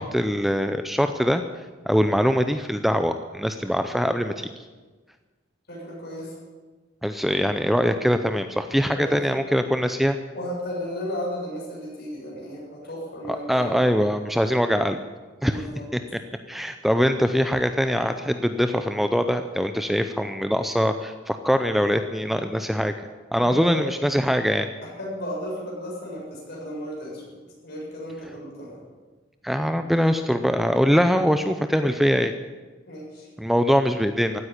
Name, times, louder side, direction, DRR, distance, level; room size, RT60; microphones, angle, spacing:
voice 1, 0.0-1.4 1.9-4.5 7.0-10.2 13.3-15.0 15.4-15.6 15.9-16.0 16.5-24.7 29.4-32.3 33.4-34.4, equal, ahead, 8 dB, 0.5 m, -23 dB
voice 2, 5.7-6.4 8.9-9.4 10.3-13.8 15.4-15.9 23.4-23.9 24.8-28.8 32.9-33.3, equal, 55° left, -3 dB, 7.3 m, -34 dB
15.5 x 9.5 x 9.9 m, 1.3 s
head